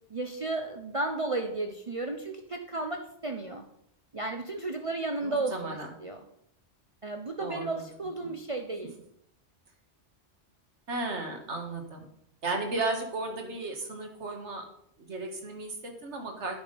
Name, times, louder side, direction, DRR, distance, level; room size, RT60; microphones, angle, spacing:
voice 1, 0.1-3.6 4.1-6.2 7.0-8.9, right 2 dB, 35° right, 4 dB, 0.7 m, -33 dB
voice 2, 5.2-5.9 7.4-7.9 8.2-8.3 10.9-12.1 12.4-14.7 15.0-16.6, right 2 dB, 80° right, 3 dB, 2.0 m, -34 dB
9.6 x 5.8 x 5.2 m, 0.71 s
omnidirectional pair, 1.2 m